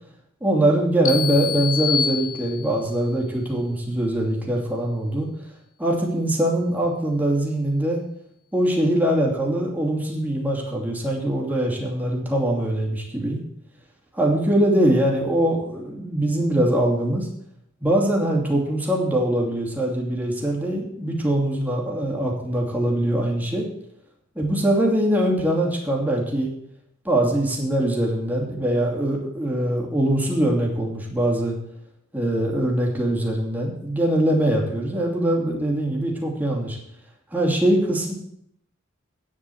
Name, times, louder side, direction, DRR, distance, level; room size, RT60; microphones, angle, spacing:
voice 1, 0.4-5.3 5.8-8.0 8.5-13.4 14.1-17.3 17.8-23.6 24.3-26.5 27.0-31.6 32.1-36.8 37.3-38.1, right 1 dB, 10° right, -2 dB, 2.6 m, -22 dB
sound 1, 1.0-2.9, left 8 dB, 80° left, 1.3 m, -27 dB
9.7 x 7.6 x 7.8 m, 0.73 s
head